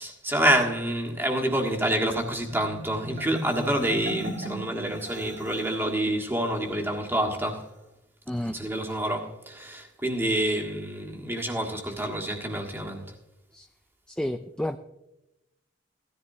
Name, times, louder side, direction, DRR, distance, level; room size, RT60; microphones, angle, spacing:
voice 1, 0.0-7.7 8.5-13.1, right 1 dB, 10° right, 1.6 m, -27 dB
Marimba xylophone, 2.5-5.8, equal, 70° right, 2.4 m, -38 dB
voice 2, 14.1-14.8, left 1 dB, 5° left, 0.3 m, -30 dB
17.0 x 14.0 x 2.7 m
head